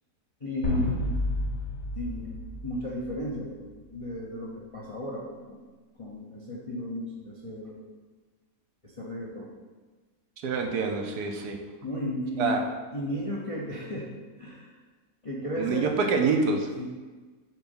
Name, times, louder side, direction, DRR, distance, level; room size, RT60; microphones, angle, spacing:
voice 1, 0.4-1.1 1.9-2.3 2.6-3.6 3.9-5.6 6.0-7.8 9.0-9.5 11.8-12.6 12.9-14.1 14.4-14.7 15.2-16.0 16.8-16.9, equal, 30° left, -5 dB, 0.6 m, -34 dB
sound 1, 0.6-3.5, left 2 dB, 70° left, 1.5 m, -31 dB
voice 2, 10.4-11.6 12.4-12.6 15.6-16.7, right 4 dB, 75° right, 3 dB, 1.3 m, -26 dB
5.8 x 4.0 x 5.4 m, 1.3 s
omnidirectional pair, 1.7 m